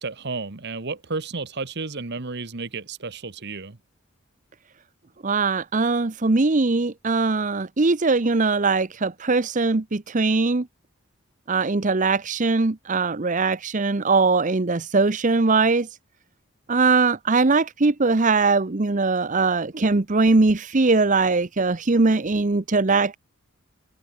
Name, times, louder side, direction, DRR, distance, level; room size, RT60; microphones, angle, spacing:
voice 1, 0.0-3.8, right 3 dB, 55° right, 1.3 m, -32 dB
voice 2, 5.2-10.7 11.5-15.9 16.7-23.2, right 3 dB, 35° right, 0.8 m, -21 dB
head